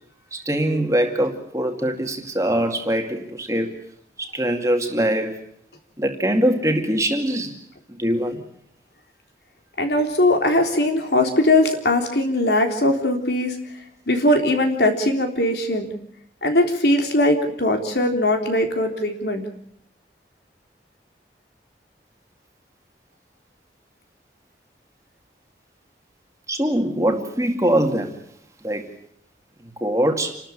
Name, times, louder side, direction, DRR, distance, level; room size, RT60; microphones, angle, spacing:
voice 1, 0.3-3.7 4.2-5.4 6.0-7.6 7.9-8.4 26.5-28.1 28.6-28.9 29.8-30.4, right 1 dB, 20° right, 4 dB, 2.2 m, -22 dB
voice 2, 9.8-13.6 14.1-15.9 16.4-19.4, left 1 dB, 70° left, 4 dB, 3.6 m, -20 dB
28.5 x 13.0 x 8.7 m, 0.71 s
head